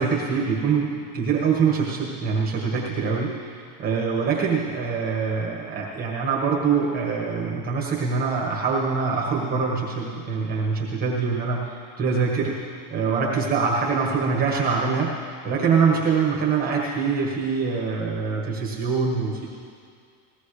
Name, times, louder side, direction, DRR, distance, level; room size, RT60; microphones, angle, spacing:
voice 1, 0.0-19.5, right 5 dB, 20° right, -3 dB, 1.6 m, -24 dB
20.0 x 17.0 x 3.3 m, 2.2 s
supercardioid pair, 175°, 43 cm